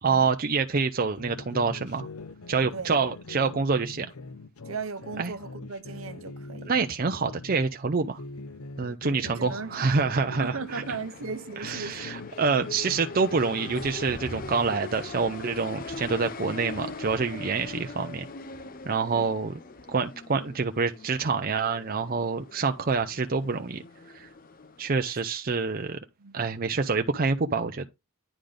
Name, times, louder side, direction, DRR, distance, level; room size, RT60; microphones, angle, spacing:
voice 1, 0.0-2.1 2.5-4.1 5.2-5.3 6.7-8.2 8.8-10.8 11.6-18.3 18.9-19.5 19.9-23.8 24.1-24.3 24.8-26.0 26.3-27.9, right 4 dB, 40° right, 0.5 m, -27 dB
sound 1, 1.2-7.6 8.1-11.4 11.6-14.8, left 3 dB, 80° left, 0.8 m, -43 dB
voice 2, 4.7-6.7 9.2-9.7 10.4-12.1 19.1-19.3 25.1-25.2 26.2-26.5, right 4 dB, 65° right, 0.9 m, -37 dB
sound 2, 9.2-25.1, left 3 dB, 40° left, 0.7 m, -42 dB
10.0 x 3.9 x 5.0 m
head